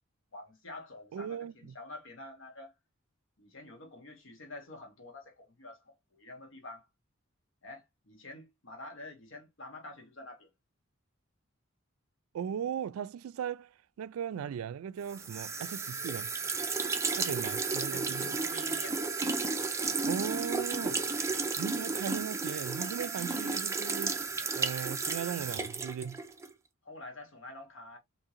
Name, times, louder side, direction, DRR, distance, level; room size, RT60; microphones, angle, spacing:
voice 1, 0.3-2.7 3.4-6.9 7.6-10.5 17.8-19.0 26.8-28.0, left 2 dB, 65° left, 1.1 m, -48 dB
voice 2, 1.1-1.7 12.3-13.7 14.0-16.3 17.2-18.4 20.1-21.0 21.6-24.2 24.5-26.2, right 8 dB, 90° right, 0.3 m, -37 dB
sound 1, 15.1-26.5, right 4 dB, 15° right, 0.4 m, -33 dB
3.7 x 2.7 x 2.8 m
head